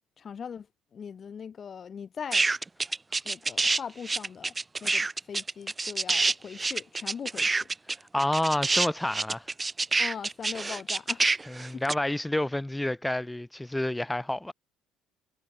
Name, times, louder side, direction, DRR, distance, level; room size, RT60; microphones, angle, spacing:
voice 1, 0.2-0.7 0.9-2.5 3.2-4.5 4.8-7.7 10.0-11.2 11.7-11.8, left 7 dB, 40° left, 3.6 m, -40 dB
sound 1, 2.3-3.8 4.0-11.9, right 3 dB, 20° right, 1.6 m, -27 dB
voice 2, 8.1-9.5 11.5-14.5, left 1 dB, 10° left, 4.1 m, -29 dB
supercardioid pair, 80°, 0 cm